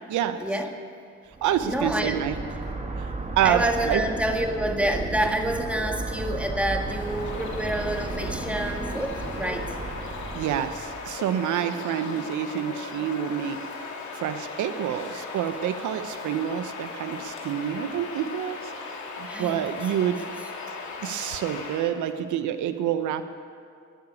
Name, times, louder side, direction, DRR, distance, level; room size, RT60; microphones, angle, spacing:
voice 1, 0.4-0.7 1.4-2.3 3.4-9.8 19.3-20.2, right 1 dB, 5° right, 3 dB, 1.8 m, -28 dB
sound 1, 1.3-11.2, right 2 dB, 25° right, 1.8 m, -34 dB
voice 2, 1.4-2.3 3.0-3.1 3.4-4.0 10.3-13.7 14.1-18.7 19.2-20.2 21.0-23.2, right 10 dB, 80° right, 9 dB, 0.8 m, -27 dB
Bird vocalization bird call bird song, 6.7-22.0, left 4 dB, 70° left, 2.5 m, -38 dB
19.5 x 7.0 x 9.5 m, 2.3 s
cardioid pair, 90°, 30 cm